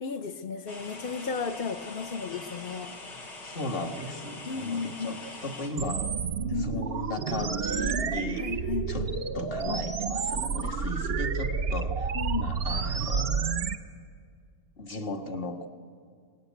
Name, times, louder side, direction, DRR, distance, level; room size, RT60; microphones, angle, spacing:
voice 1, 0.0-2.9 4.4-5.1 6.5-6.9 8.4-9.1 12.1-12.5, left 5 dB, 50° left, 7 dB, 0.6 m, -34 dB
sound 1, 0.7-5.7, left 2 dB, 85° left, 3.9 m, -43 dB
voice 2, 3.4-6.1 6.5-9.1 9.3-12.1 12.4-13.7 14.8-15.7, left 2 dB, 35° left, 4 dB, 1.6 m, -36 dB
sound 2, 5.8-13.8, right 5 dB, 45° right, 0.8 m, -30 dB
24.5 x 19.5 x 9.3 m, 2.1 s
omnidirectional pair, 1.9 m